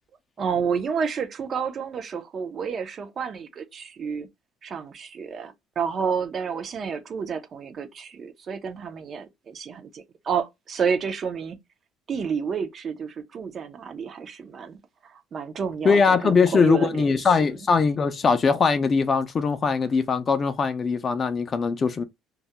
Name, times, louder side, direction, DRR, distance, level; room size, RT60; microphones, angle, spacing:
voice 1, 0.4-4.3 4.6-11.6 12.1-17.5, right 6 dB, 40° right, 0.4 m, -30 dB
voice 2, 15.8-22.0, left 5 dB, 35° left, 0.4 m, -21 dB
2.2 x 2.0 x 2.7 m
cardioid pair, 110°, 0 cm